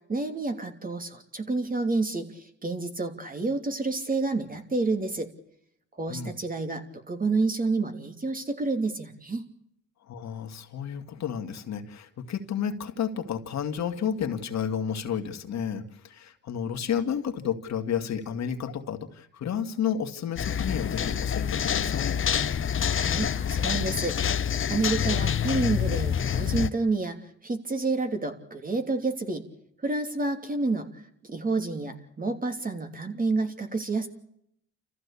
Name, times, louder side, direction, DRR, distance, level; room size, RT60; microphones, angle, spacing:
voice 1, 0.1-5.3 5.9-9.5 22.9-27.2 27.4-29.4 29.8-30.9 31.2-34.1, right 3 dB, 30° right, 6 dB, 3.1 m, -29 dB
voice 2, 10.1-22.2, left 8 dB, 65° left, 5 dB, 2.2 m, -31 dB
sound 1, 20.4-26.7, left 8 dB, 45° left, 0.9 m, -27 dB
29.0 x 15.0 x 8.4 m, 0.74 s
cardioid pair, 90°, 30 cm